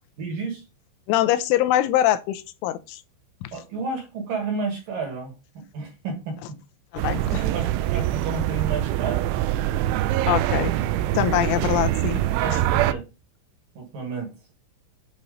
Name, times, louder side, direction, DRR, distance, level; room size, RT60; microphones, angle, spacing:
voice 1, 0.2-0.6 3.5-6.6 7.4-9.3 12.0-13.0 13.8-14.3, right 4 dB, 60° right, 2.4 m, -32 dB
voice 2, 1.1-3.0 3.4-3.5 6.9-7.4 10.3-10.7 11.1-12.2, left 13 dB, 85° left, 3.0 m, -23 dB
sound 1, 7.0-12.9, right 14 dB, 85° right, 2.9 m, -24 dB
8.7 x 4.2 x 5.1 m
omnidirectional pair, 5.7 m